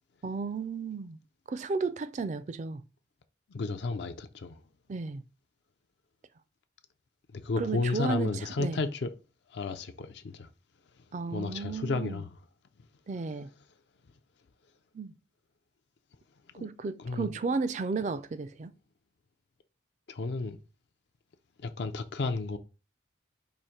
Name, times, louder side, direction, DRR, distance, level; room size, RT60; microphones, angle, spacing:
voice 1, 0.2-1.2 1.5-2.8 4.9-5.2 7.6-8.8 11.1-12.2 13.1-13.5 14.9-15.1 16.6-18.7, right 4 dB, 40° right, 0.3 m, -33 dB
voice 2, 3.5-4.6 7.3-9.1 9.5-10.5 11.3-12.3 16.5-16.7 17.0-17.3 20.1-20.6 21.6-22.6, left 3 dB, 65° left, 0.4 m, -32 dB
4.9 x 2.5 x 4.3 m
head